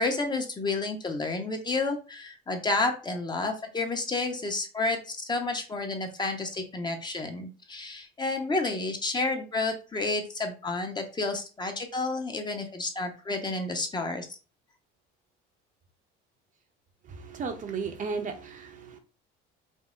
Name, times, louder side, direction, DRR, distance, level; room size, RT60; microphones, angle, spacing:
voice 1, 0.0-14.3, left 3 dB, 20° left, 4 dB, 0.9 m, -30 dB
voice 2, 17.0-19.0, right 5 dB, 40° right, 6 dB, 0.8 m, -35 dB
5.3 x 2.0 x 3.8 m, 0.34 s
cardioid pair, 125°, 20 cm